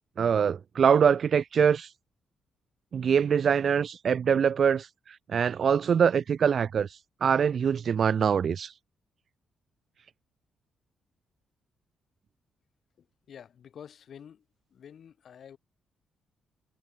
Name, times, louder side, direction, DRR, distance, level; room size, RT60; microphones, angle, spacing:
voice 1, 0.2-1.9 2.9-4.9 5.3-6.9 7.2-8.7, right 7 dB, 40° right, 0.6 m, -23 dB
voice 2, 13.0-14.4 14.7-15.6, left 8 dB, 50° left, 6.6 m, -49 dB
cardioid pair, 165°, 0 cm